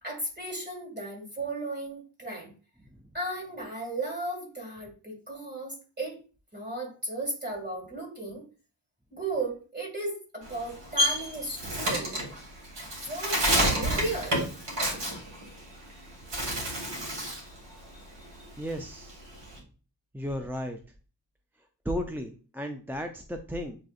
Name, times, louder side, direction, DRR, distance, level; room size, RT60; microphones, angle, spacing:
voice 1, 0.0-2.5 3.1-6.2 6.5-8.4 9.1-12.2 13.1-14.4, right 2 dB, 25° right, -2 dB, 2.3 m, -35 dB
Bird, 10.4-15.9 16.2-17.5 17.8-19.6, right 1 dB, 65° right, 1.8 m, -29 dB
voice 2, 18.6-19.2 20.1-20.8 21.9-23.8, equal, 5° right, 5 dB, 0.3 m, -34 dB
7.1 x 2.5 x 2.4 m, 0.37 s
cardioid pair, 65°, 45 cm